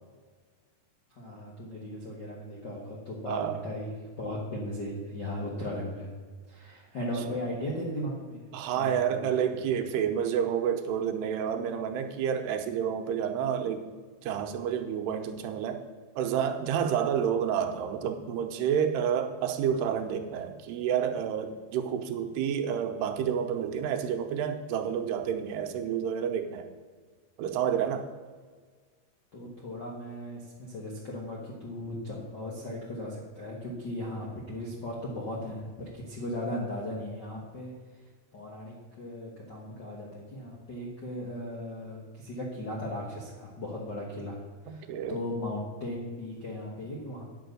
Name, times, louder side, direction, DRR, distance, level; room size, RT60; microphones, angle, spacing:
voice 1, 1.1-6.1 6.5-9.6 29.3-37.7 38.3-47.2, left 1 dB, 75° left, -4 dB, 0.9 m, -37 dB
voice 2, 3.3-3.6 8.5-13.9 14.2-15.8 16.2-26.7 27.4-28.1 44.7-45.2, right 8 dB, 85° right, 6 dB, 2.9 m, -29 dB
9.9 x 7.0 x 6.6 m, 1.5 s
omnidirectional pair, 4.7 m